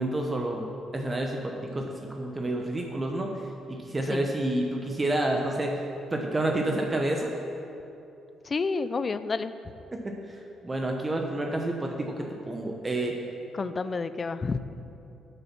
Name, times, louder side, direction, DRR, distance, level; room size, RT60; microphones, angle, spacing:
voice 1, 0.0-5.9 6.1-7.3 9.9-13.2, right 1 dB, 25° right, 1 dB, 0.9 m, -29 dB
voice 2, 8.4-9.5 13.5-14.6, left 4 dB, 35° left, 13 dB, 0.4 m, -29 dB
8.7 x 6.8 x 6.0 m, 2.8 s
cardioid pair, 90°, 0 cm